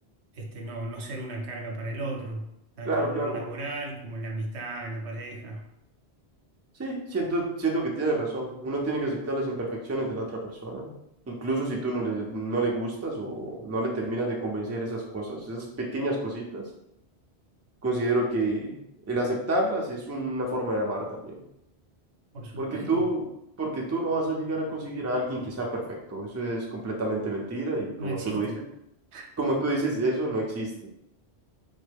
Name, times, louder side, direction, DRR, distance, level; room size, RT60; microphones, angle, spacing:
voice 1, 0.3-2.5 2.8-5.6 22.3-23.1 28.0-28.6 29.1-29.3, right 2 dB, 85° right, 1 dB, 1.0 m, -35 dB
voice 2, 2.8-3.5 6.8-10.9 11.3-16.6 17.8-18.8 19.1-21.3 22.6-23.2 23.6-25.8 26.1-28.5 29.4-30.9, right 2 dB, 20° right, -1 dB, 0.4 m, -29 dB
3.5 x 2.1 x 3.4 m, 0.80 s
omnidirectional pair, 1.1 m